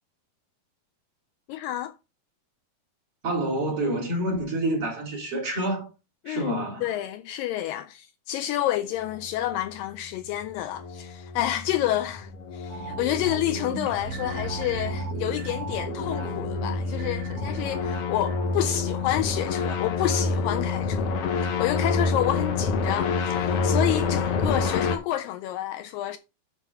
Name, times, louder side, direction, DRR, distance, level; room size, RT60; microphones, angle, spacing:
voice 1, 1.5-1.9 6.3-21.1 21.4-26.2, left 13 dB, 80° left, 2.1 m, -29 dB
voice 2, 3.2-5.9 6.3-7.0, right 1 dB, 40° right, 4.8 m, -28 dB
sound 1, 10.4-25.0, left 4 dB, 65° left, 1.6 m, -28 dB
sound 2, 12.7-22.0 22.4-22.5, right 5 dB, 70° right, 1.5 m, -39 dB
8.1 x 5.8 x 5.3 m
omnidirectional pair, 4.3 m